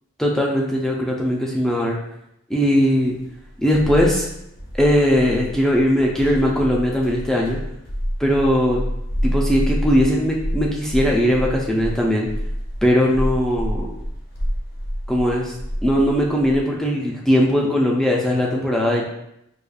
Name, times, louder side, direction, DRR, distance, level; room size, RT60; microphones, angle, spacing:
voice 1, 0.2-2.0 2.5-3.1 3.6-4.3 4.7-7.6 8.2-8.8 9.2-12.3 12.8-13.9 15.1-15.5 15.8-19.0, equal, ahead, -2 dB, 0.3 m, -19 dB
sound 1, 3.1-16.6, equal, 45° left, 0.6 m, -28 dB
4.8 x 2.3 x 2.3 m, 0.79 s
head